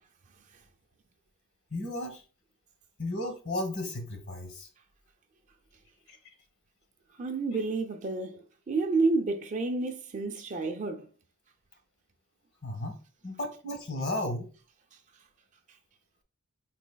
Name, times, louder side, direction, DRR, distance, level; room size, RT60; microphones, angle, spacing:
voice 1, 1.7-2.2 3.0-4.7 6.1-6.2 12.6-13.0 13.2-14.5, left 1 dB, 55° left, 1.3 m, -34 dB
voice 2, 7.2-11.1, right 3 dB, 35° right, 0.4 m, -30 dB
5.1 x 4.0 x 2.2 m
head